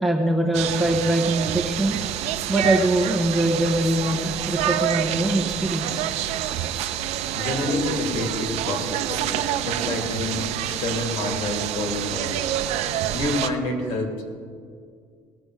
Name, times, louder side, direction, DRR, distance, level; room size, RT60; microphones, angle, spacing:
voice 1, 0.0-1.9 2.5-6.1, right 1 dB, ahead, 0 dB, 0.9 m, -22 dB
sound 1, 0.5-13.5, right 11 dB, 65° right, 0.6 m, -27 dB
voice 2, 7.3-12.5 13.1-14.3, left 2 dB, 55° left, 2 dB, 2.6 m, -28 dB
19.5 x 7.1 x 4.8 m, 2.1 s
cardioid pair, 175°, 12 cm